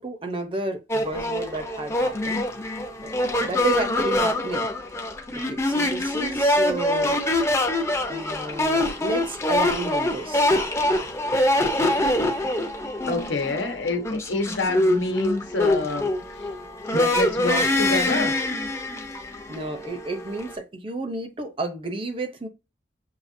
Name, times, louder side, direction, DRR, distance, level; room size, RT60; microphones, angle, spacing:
voice 1, 0.0-2.4 3.0-4.7 5.3-7.2 8.1-10.5 19.5-22.5, right 2 dB, 30° right, 0.6 m, -31 dB
sound 1, 0.9-20.6, left 1 dB, 15° left, 0.6 m, -24 dB
voice 2, 13.1-16.1 16.9-18.4, left 2 dB, 80° left, 1.0 m, -27 dB
6.5 x 2.8 x 2.6 m
head